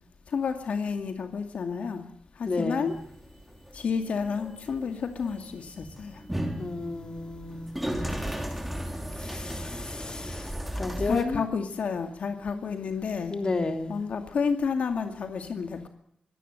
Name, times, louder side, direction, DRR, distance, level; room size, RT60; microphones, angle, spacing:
voice 1, 0.3-2.1 2.4-3.0 3.7-6.2 11.0-13.4 13.9-15.9, left 5 dB, 70° left, 6 dB, 2.3 m, -30 dB
voice 2, 2.4-2.9 6.6-7.9 9.2-10.5 10.8-11.4 12.4-12.7 13.3-14.0, left 3 dB, 35° left, 6 dB, 3.3 m, -32 dB
sound 1, 2.9-11.2, right 1 dB, 5° right, 3.8 m, -35 dB
23.5 x 18.0 x 8.0 m, 0.69 s
wide cardioid pair, 130°, 2 cm